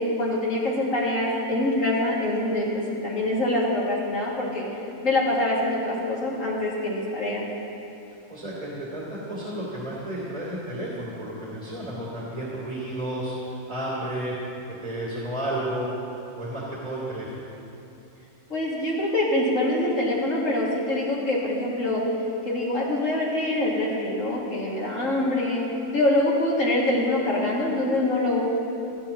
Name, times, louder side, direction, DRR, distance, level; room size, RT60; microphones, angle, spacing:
voice 1, 0.0-4.7 5.0-7.4 18.5-22.0 22.4-25.6 25.9-28.4, left 1 dB, 60° left, -5 dB, 2.7 m, -25 dB
voice 2, 8.3-13.3 13.7-14.3 14.8-15.9 16.3-17.5, right 1 dB, 30° right, -7 dB, 2.9 m, -32 dB
25.5 x 10.0 x 3.0 m, 2.8 s
omnidirectional pair, 1.5 m